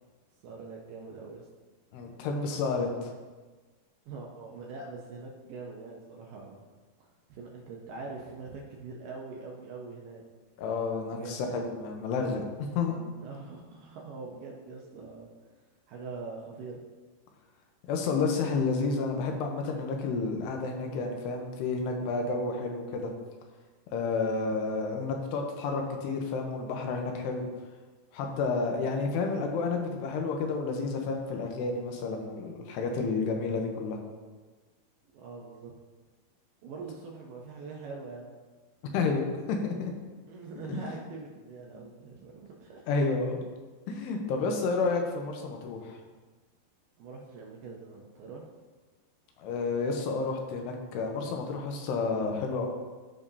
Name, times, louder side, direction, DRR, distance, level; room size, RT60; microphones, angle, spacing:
voice 1, 0.4-1.5 4.1-6.6 7.0-10.2 11.1-11.4 13.2-15.3 15.9-16.8 35.1-35.7 36.6-38.3 40.3-42.9 47.0-48.5, right 4 dB, 75° right, -2 dB, 2.1 m, -43 dB
voice 2, 1.9-3.1 10.6-13.1 17.9-23.1 23.9-27.5 28.1-34.0 38.9-39.3 39.6-39.9 40.7-40.9 42.9-43.4 43.9-46.0 49.4-52.7, left 4 dB, 85° left, 2 dB, 3.0 m, -30 dB
14.5 x 5.2 x 2.8 m, 1.3 s
omnidirectional pair, 4.7 m